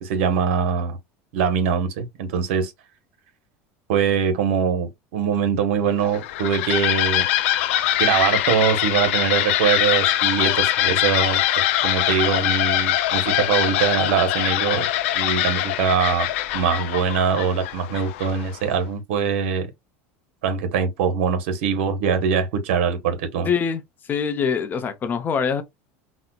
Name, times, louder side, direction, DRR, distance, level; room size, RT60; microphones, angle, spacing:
voice 1, 0.0-1.0 1.3-2.7 3.9-7.2 8.0-14.9 15.1-16.3 16.5-19.7 20.4-23.5, right 7 dB, 85° right, 0.9 m, -22 dB
sound 1, 6.0-18.6, left 13 dB, 85° left, 0.4 m, -23 dB
voice 2, 23.4-23.8 24.1-25.6, left 6 dB, 30° left, 0.6 m, -23 dB
4.0 x 2.1 x 2.2 m
supercardioid pair, 135°, 7 cm